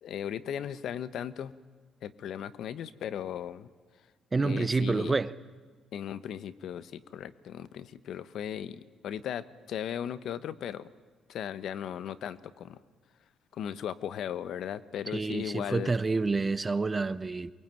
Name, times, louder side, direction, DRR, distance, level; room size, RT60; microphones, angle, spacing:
voice 1, 0.0-1.5 2.0-3.7 4.4-5.2 5.9-10.9 11.3-12.8 13.5-15.9, left 9 dB, 75° left, 1.0 m, -37 dB
voice 2, 4.3-5.3 15.1-17.5, right 3 dB, 25° right, 0.9 m, -28 dB
23.0 x 21.5 x 9.1 m
cardioid pair, 90°, 0 cm